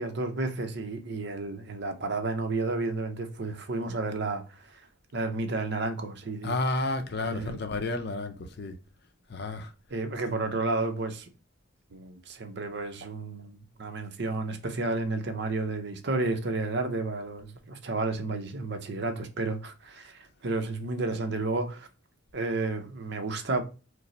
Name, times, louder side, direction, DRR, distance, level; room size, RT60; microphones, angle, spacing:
voice 1, 0.0-4.8 5.1-6.5 7.2-7.6 9.9-11.3 11.9-21.9 22.3-23.6, right 3 dB, 55° right, 0.7 m, -31 dB
voice 2, 6.4-8.8 9.3-9.7, left 2 dB, 55° left, 0.5 m, -31 dB
5.1 x 2.0 x 3.0 m
head